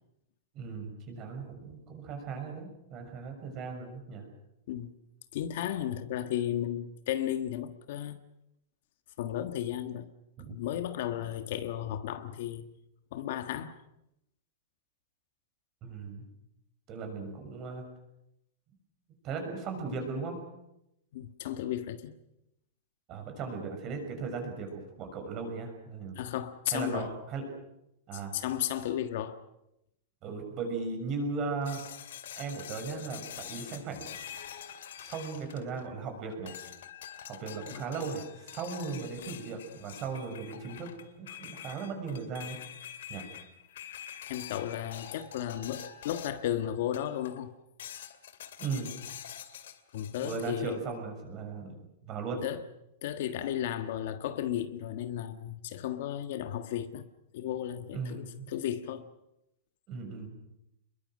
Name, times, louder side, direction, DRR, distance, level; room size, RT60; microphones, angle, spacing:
voice 1, 0.5-4.2 10.4-10.5 15.8-16.3 16.9-17.8 19.2-20.4 23.1-26.2 26.7-27.4 28.1-28.4 30.2-31.8 32.3-34.4 35.0-36.6 37.3-40.9 41.2-42.6 43.1-43.2 48.6-48.9 50.2-52.4 57.9-58.5 59.9-60.3, right 4 dB, 25° right, 6.3 m, -37 dB
voice 2, 5.3-8.2 9.2-10.1 10.5-12.6 13.1-13.8 21.1-22.1 26.1-27.1 28.1-29.4 37.7-37.8 44.3-47.5 49.9-50.8 52.4-52.6 53.0-57.1 57.3-59.1, left 11 dB, 55° left, 1.4 m, -34 dB
sound 1, 31.6-36.0 36.5-46.5 46.9-47.4 47.8-50.5, left 9 dB, 75° left, 2.5 m, -46 dB
27.5 x 22.0 x 6.5 m
supercardioid pair, 165°, 0 cm